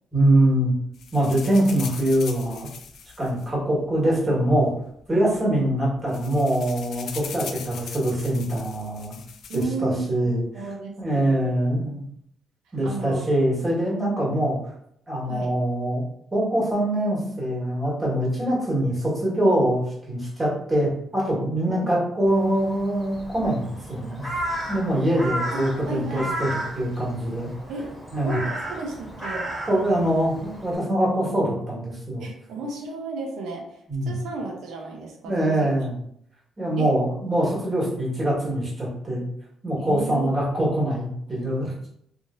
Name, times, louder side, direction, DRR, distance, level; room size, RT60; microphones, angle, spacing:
voice 1, 0.1-0.7 1.1-2.7 3.2-4.7 5.1-9.1 9.5-10.7 11.0-12.0 12.7-14.6 15.1-16.0 16.3-24.2 24.7-26.5 26.7-27.5 28.1-28.4 29.7-32.3 33.9-34.1 35.2-36.0 36.6-39.2 39.6-41.7, right 1 dB, 25° right, -5 dB, 1.5 m, -23 dB
sound 1, 0.9-4.2 5.0-5.1 5.3-5.5 5.8-9.6, left 7 dB, 70° left, 0.3 m, -40 dB
voice 2, 9.5-11.5 12.8-13.3 15.3-15.5 21.7-21.9 25.5-26.4 27.7-27.9 28.2-29.5 32.2-35.8 36.8-36.9 39.8-40.3, right 3 dB, 90° right, 0 dB, 0.7 m, -33 dB
Crow, 22.3-30.8, right 1 dB, ahead, 1.4 m, -34 dB
3.1 x 2.6 x 2.5 m, 0.71 s
cardioid pair, 95°, 0 cm